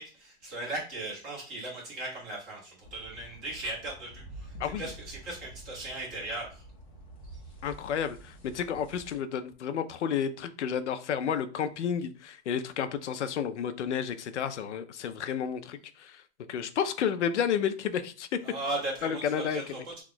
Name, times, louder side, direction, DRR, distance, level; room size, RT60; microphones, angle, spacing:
voice 1, 0.0-6.6 18.4-20.0, right 2 dB, 20° right, 1.3 m, -37 dB
sound 1, 2.8-9.1, right 2 dB, 30° left, 0.8 m, -48 dB
voice 2, 4.6-4.9 7.6-16.2 16.5-18.4 19.0-19.8, left 8 dB, 85° left, 0.5 m, -31 dB
2.9 x 2.3 x 3.8 m
hypercardioid pair, 170°, 34 cm